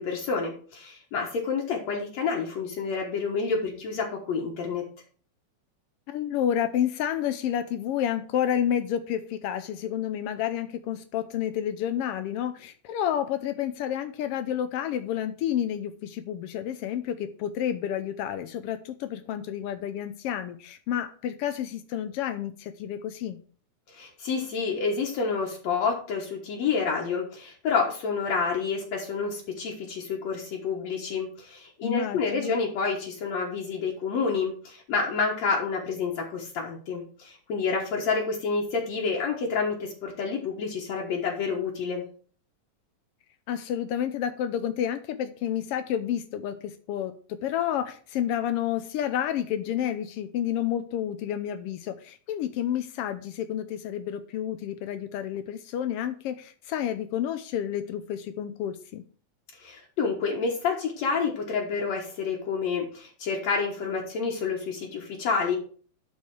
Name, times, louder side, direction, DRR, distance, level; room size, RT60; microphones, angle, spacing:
voice 1, 0.0-4.8 23.9-42.0 59.6-65.6, left 5 dB, 65° left, -1 dB, 2.5 m, -29 dB
voice 2, 6.1-23.4 31.8-32.6 43.5-59.0, left 10 dB, 85° left, 9 dB, 1.3 m, -30 dB
11.0 x 4.6 x 4.7 m, 0.43 s
omnidirectional pair, 3.3 m